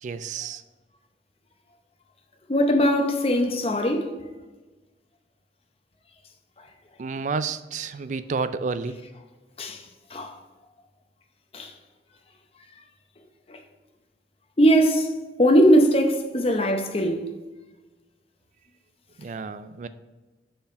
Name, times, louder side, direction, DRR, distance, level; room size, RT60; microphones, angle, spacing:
voice 1, 0.0-0.6 7.0-9.0 19.2-19.9, right 4 dB, 45° right, 0.3 m, -30 dB
voice 2, 2.5-4.2 9.6-9.8 10.1-10.4 11.5-11.7 13.5-13.6 14.6-15.1 15.4-17.3, equal, 35° left, 0.7 m, -20 dB
5.6 x 4.4 x 5.1 m
head